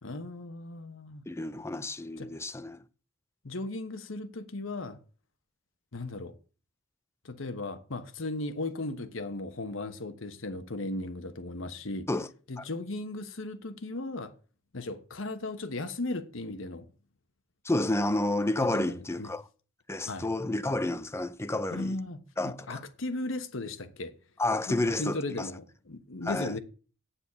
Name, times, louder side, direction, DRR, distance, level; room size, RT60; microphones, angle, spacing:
voice 1, 0.0-1.2 2.2-2.3 3.4-5.0 5.9-6.3 7.2-12.1 12.5-14.3 14.7-16.8 18.6-19.3 20.1-20.3 21.7-24.1 24.7-26.6, left 2 dB, 70° left, 1.2 m, -36 dB
voice 2, 1.3-2.8 12.1-12.3 12.6-12.7 17.6-19.4 19.9-22.0 22.4-22.8 24.4-25.5 26.2-26.5, left 2 dB, 15° left, 0.5 m, -30 dB
8.9 x 7.2 x 6.9 m
head